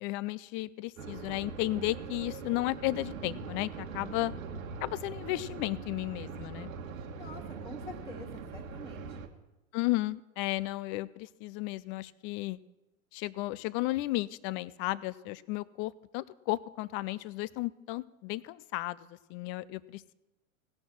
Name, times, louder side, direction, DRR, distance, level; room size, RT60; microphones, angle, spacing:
voice 1, 0.0-4.3 4.8-6.7 9.7-12.6 13.1-20.1, left 18 dB, 30° left, 20 dB, 0.4 m, -34 dB
sound 1, 1.0-9.3, right 5 dB, 75° right, 1.6 m, -42 dB
voice 2, 7.2-9.2, left 2 dB, 10° left, 1 dB, 1.9 m, -46 dB
17.5 x 6.4 x 6.1 m, 1.0 s
hypercardioid pair, 105°, 41 cm